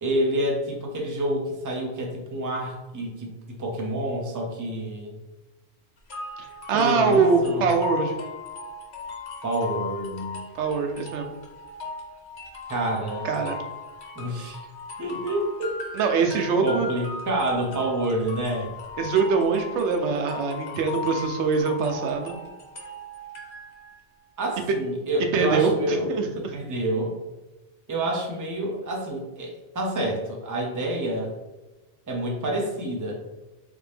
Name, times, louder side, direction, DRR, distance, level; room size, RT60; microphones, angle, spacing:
voice 1, 0.0-5.1 6.7-7.7 9.4-10.4 12.7-13.3 14.2-14.6 15.0-15.8 16.3-18.7 24.4-26.1 26.5-27.2 27.9-31.3 32.1-33.2, right 1 dB, 20° right, 0 dB, 0.5 m, -28 dB
sound 1, 6.1-24.0, left 3 dB, 75° left, 1.0 m, -37 dB
voice 2, 6.7-8.2 10.6-11.3 13.2-13.6 15.9-16.9 19.0-22.4 24.7-24.8 25.3-26.3, right 4 dB, 90° right, 5 dB, 0.9 m, -23 dB
3.5 x 2.8 x 3.3 m, 1.1 s
omnidirectional pair, 1.1 m